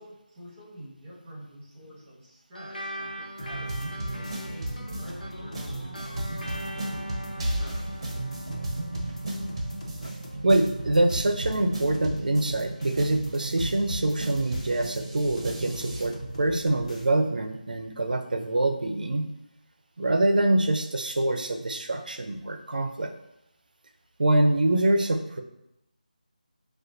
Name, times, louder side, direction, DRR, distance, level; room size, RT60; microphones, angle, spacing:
voice 1, 0.0-5.9 6.4-7.9, equal, 10° right, -8 dB, 1.3 m, -47 dB
sound 1, 2.5-11.4, equal, 80° left, 0.8 m, -42 dB
sound 2, 3.4-17.1, left 1 dB, 50° left, 0.7 m, -46 dB
sound 3, 3.4-17.1, right 1 dB, 30° right, 0.7 m, -34 dB
voice 2, 10.4-19.3 20.0-23.1 24.2-25.4, right 1 dB, 70° right, 5 dB, 0.5 m, -25 dB
6.3 x 2.4 x 2.6 m, 0.87 s
figure-of-eight pair, 170°, 5 cm